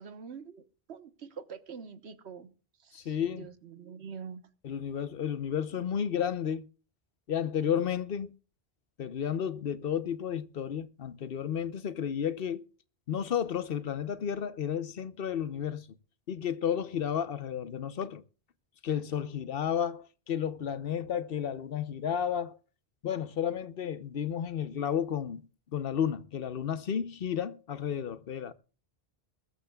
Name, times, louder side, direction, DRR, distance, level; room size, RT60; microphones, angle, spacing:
voice 1, 0.0-2.5 2.8-4.4, right 6 dB, 85° right, 1.3 m, -45 dB
voice 2, 2.9-3.5 4.6-6.7 7.3-8.3 9.0-12.7 13.1-15.9 16.3-18.2 18.8-22.6 23.0-25.4 25.7-28.5, left 8 dB, 60° left, 1.0 m, -32 dB
21.5 x 13.5 x 2.3 m
omnidirectional pair, 1.1 m